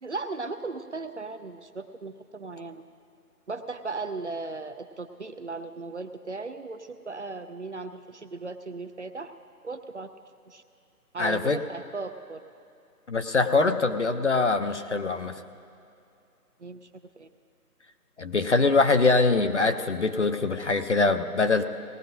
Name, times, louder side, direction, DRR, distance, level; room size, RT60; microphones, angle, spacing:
voice 1, 0.0-2.8 3.5-9.3 9.6-10.1 10.5-10.6 11.1-12.4 16.6-16.9 17.2-17.3, right 3 dB, 50° right, 9 dB, 0.5 m, -37 dB
voice 2, 11.2-11.6 13.1-15.4 18.2-21.6, left 3 dB, 50° left, 8 dB, 0.6 m, -23 dB
19.0 x 15.0 x 2.6 m, 2.5 s
hypercardioid pair, 170°, 47 cm